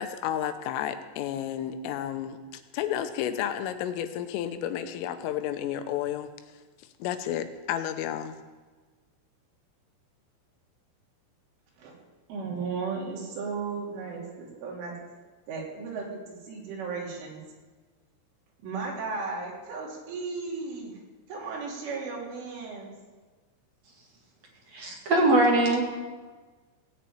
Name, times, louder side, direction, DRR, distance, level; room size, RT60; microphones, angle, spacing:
voice 1, 0.0-6.3 7.0-8.4, left 10 dB, 85° left, 9 dB, 3.5 m, -31 dB
voice 2, 12.3-15.0 15.5-17.4 18.6-21.0 21.3-22.9, right 4 dB, 75° right, -3 dB, 5.7 m, -35 dB
voice 3, 24.7-25.8, right 2 dB, 45° right, -1 dB, 2.5 m, -21 dB
17.5 x 7.3 x 8.8 m, 1.3 s
omnidirectional pair, 5.7 m